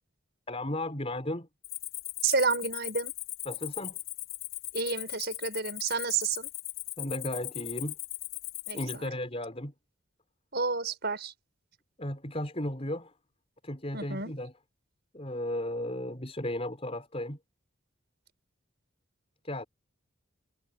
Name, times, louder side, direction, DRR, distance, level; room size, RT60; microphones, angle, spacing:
voice 1, 0.5-1.5 3.4-4.0 7.0-8.0 8.7-9.7 12.0-13.1 13.6-14.5 15.1-17.4 19.4-19.6, left 1 dB, 30° left, 4.6 m, -35 dB
Cricket, 1.6-9.1, left 17 dB, 75° left, 5.1 m, -39 dB
voice 2, 2.2-3.1 4.7-6.5 8.7-9.1 10.5-11.3 13.9-14.3, right 4 dB, 50° right, 6.5 m, -30 dB
head